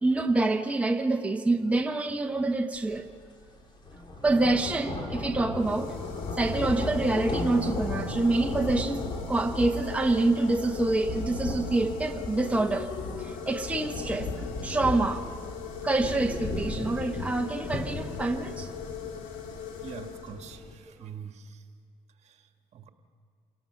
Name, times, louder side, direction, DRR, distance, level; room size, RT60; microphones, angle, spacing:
voice 1, 0.0-3.1 4.2-6.0 6.3-15.2 15.8-18.7, right 2 dB, 10° right, 1.0 m, -27 dB
sound 1, 2.9-3.1 3.5-20.7, left 2 dB, 35° left, 2.7 m, -36 dB
sound 2, 5.5-20.8, left 8 dB, 75° left, 2.2 m, -41 dB
voice 2, 19.8-21.6 22.2-22.9, right 7 dB, 55° right, 1.6 m, -44 dB
28.0 x 17.5 x 6.0 m
cardioid pair, 90°, 14 cm